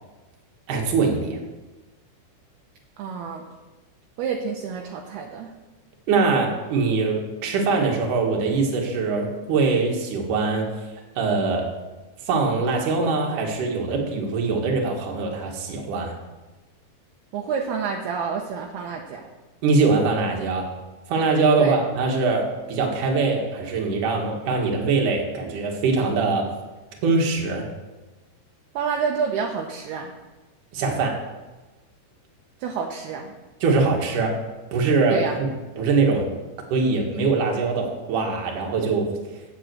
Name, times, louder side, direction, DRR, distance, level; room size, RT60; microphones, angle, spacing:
voice 1, 0.7-1.4 6.1-10.7 11.2-11.7 12.3-16.1 19.6-20.7 21.1-26.5 27.0-27.6 30.7-31.2 33.6-34.4 34.7-35.5 35.8-36.3 36.7-39.1, right 4 dB, 60° right, 0 dB, 2.8 m, -22 dB
voice 2, 3.0-3.5 4.2-5.5 17.3-19.3 21.6-21.8 28.7-30.1 32.6-33.4 35.1-35.4, right 6 dB, 75° right, 2 dB, 2.6 m, -28 dB
8.5 x 8.3 x 7.7 m, 1.1 s
omnidirectional pair, 4.9 m